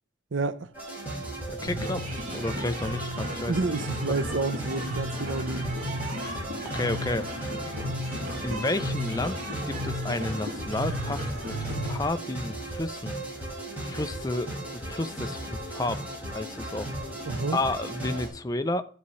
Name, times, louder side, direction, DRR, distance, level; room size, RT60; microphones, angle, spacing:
voice 1, 0.3-0.7 3.4-5.9 17.3-17.6, right 3 dB, 85° right, 0.6 m, -29 dB
sound 1, 0.7-18.3, right 1 dB, 10° right, 5.4 m, -36 dB
voice 2, 1.5-3.5 4.1-4.2 6.7-7.3 8.0-9.4 9.7-13.1 13.8-14.5 14.9-16.0 16.3-16.9 17.5-18.8, left 2 dB, 20° left, 0.5 m, -31 dB
sound 2, 1.6-11.9, equal, 45° right, 4.5 m, -35 dB
12.5 x 9.6 x 3.1 m
head